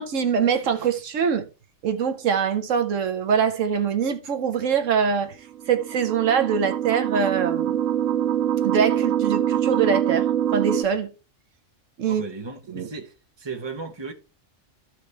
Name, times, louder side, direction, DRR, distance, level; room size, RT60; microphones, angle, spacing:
voice 1, 0.0-1.5 1.8-5.4 5.7-7.8 8.6-11.1 12.0-12.2 12.7-12.9, right 7 dB, 70° right, 1.2 m, -23 dB
sound 1, 5.6-10.8, right 11 dB, 90° right, 1.1 m, -24 dB
voice 2, 12.1-14.1, right 4 dB, 20° right, 1.0 m, -36 dB
13.5 x 4.6 x 3.2 m
omnidirectional pair, 1.4 m